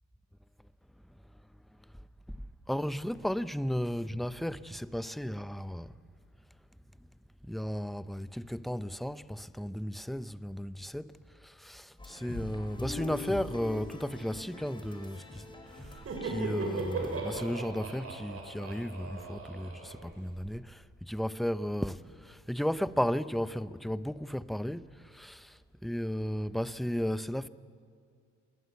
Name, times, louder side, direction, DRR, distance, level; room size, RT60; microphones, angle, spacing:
voice 1, 2.7-5.9 7.4-27.5, equal, ahead, 0.6 m, -35 dB
sound 1, 12.0-17.6, left 3 dB, 15° left, 4.3 m, -43 dB
Laughter, 15.8-20.5, right 3 dB, 50° right, 6.6 m, -38 dB
28.0 x 21.0 x 8.2 m
cardioid pair, 90°, 30 cm